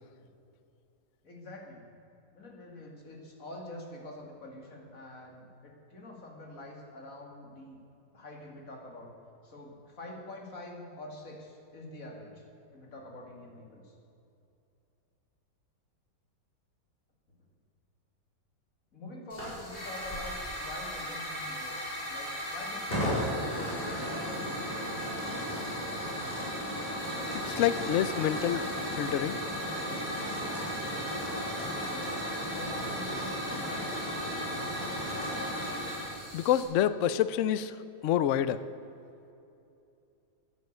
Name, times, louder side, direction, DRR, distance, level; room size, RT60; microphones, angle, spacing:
voice 1, 1.2-1.8 2.3-7.8 8.1-9.1 9.4-12.4 12.7-13.9 18.9-21.8 22.1-24.7 31.7-33.9, left 1 dB, 50° left, 0 dB, 2.7 m, -46 dB
Hiss / Fire, 19.3-36.6, equal, 20° left, 4.6 m, -34 dB
voice 2, 27.3-28.7 29.0-29.4 36.3-37.7 38.0-38.6, left 11 dB, 80° left, 14 dB, 0.6 m, -27 dB
12.5 x 10.5 x 8.0 m, 2.7 s
omnidirectional pair, 1.9 m